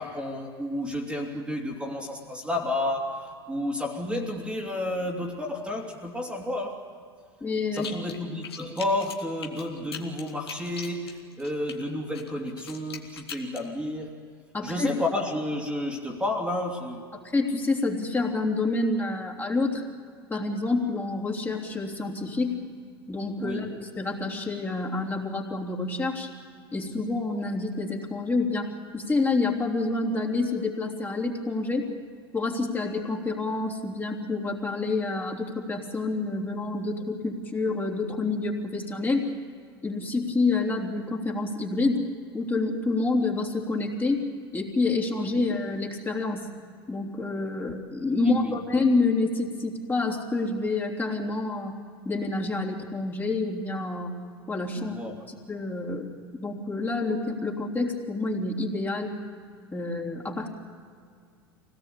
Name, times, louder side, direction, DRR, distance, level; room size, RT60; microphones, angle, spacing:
voice 1, 0.0-6.8 7.7-14.2 14.6-17.1 23.4-23.7 48.2-48.6 54.8-55.1, left 1 dB, 10° right, 0 dB, 2.9 m, -31 dB
voice 2, 7.4-7.9 14.5-14.9 17.3-19.8 20.3-22.6 23.1-26.3 26.7-31.9 32.3-39.3 39.8-42.1 42.3-44.2 44.5-46.5 46.9-51.7 52.0-54.1 54.5-54.9 55.3-59.1 59.7-60.5, left 3 dB, 15° left, -1 dB, 3.3 m, -28 dB
sound 1, 7.7-8.2 8.4-11.8 12.1-13.6, left 7 dB, 80° left, 2.3 m, -40 dB
24.5 x 18.0 x 8.5 m, 2.2 s
hypercardioid pair, 85°, 13 cm